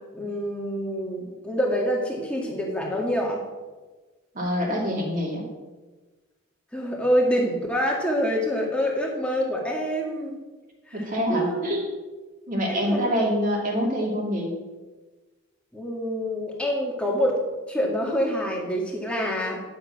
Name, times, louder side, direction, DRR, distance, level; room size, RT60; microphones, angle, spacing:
voice 1, 0.1-3.4 6.7-10.4 11.3-11.6 12.7-13.1 15.7-17.4 17.7-19.6, equal, 5° left, -2 dB, 2.0 m, -26 dB
voice 2, 4.3-5.4 10.9-11.8 12.5-14.5, equal, 40° right, -1 dB, 2.5 m, -25 dB
11.0 x 7.0 x 5.9 m, 1.3 s
head